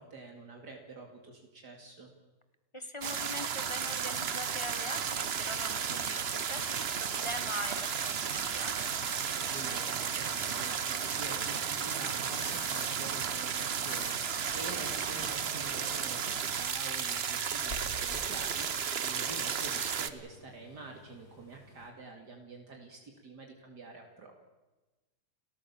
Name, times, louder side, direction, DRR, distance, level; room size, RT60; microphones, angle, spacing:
voice 1, 0.0-2.1 9.5-24.3, right 3 dB, 70° right, 2 dB, 3.0 m, -47 dB
voice 2, 2.7-8.7 15.4-15.5, left 1 dB, 20° left, 9 dB, 1.4 m, -42 dB
sound 1, 3.0-20.1, right 7 dB, 45° right, 1.0 m, -33 dB
sound 2, 4.0-21.9, left 1 dB, 65° left, 3.8 m, -52 dB
30.0 x 14.0 x 7.2 m, 1.1 s
omnidirectional pair, 1.9 m